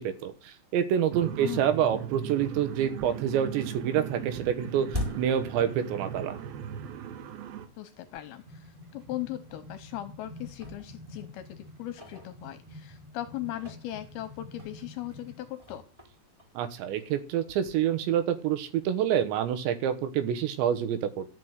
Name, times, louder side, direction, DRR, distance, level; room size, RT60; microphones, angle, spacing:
voice 1, 0.0-6.4 16.6-21.3, right 9 dB, 85° right, 9 dB, 3.5 m, -27 dB
sound 1, 1.1-7.7, right 9 dB, 70° right, 2.7 m, -38 dB
voice 2, 1.4-1.8 7.8-15.8, left 14 dB, 80° left, 10 dB, 2.4 m, -38 dB
sound 2, 3.5-6.4 6.7-6.8 7.5-7.6 8.1-8.2 8.6-8.7 9.5-10.0 10.3-12.9 13.4-17.3, left 2 dB, 5° right, 3.0 m, -43 dB
sound 3, 7.9-15.5, left 1 dB, 45° right, 2.9 m, -48 dB
13.0 x 5.8 x 8.1 m, 0.38 s
omnidirectional pair, 5.1 m